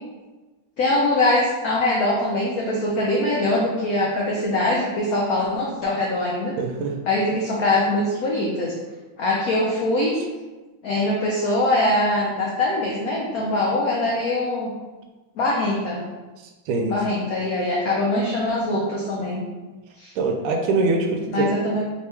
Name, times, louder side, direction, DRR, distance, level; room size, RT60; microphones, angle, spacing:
voice 1, 0.8-6.5 7.0-8.7 9.2-10.1 10.8-14.7 15.4-16.0 16.8-19.4 20.0-20.1 21.3-21.8, left 1 dB, 85° left, -4 dB, 0.8 m, -22 dB
voice 2, 6.6-7.0 16.7-17.0 20.2-21.6, right 3 dB, 80° right, 3 dB, 1.4 m, -23 dB
3.5 x 3.0 x 3.3 m, 1.2 s
omnidirectional pair, 2.3 m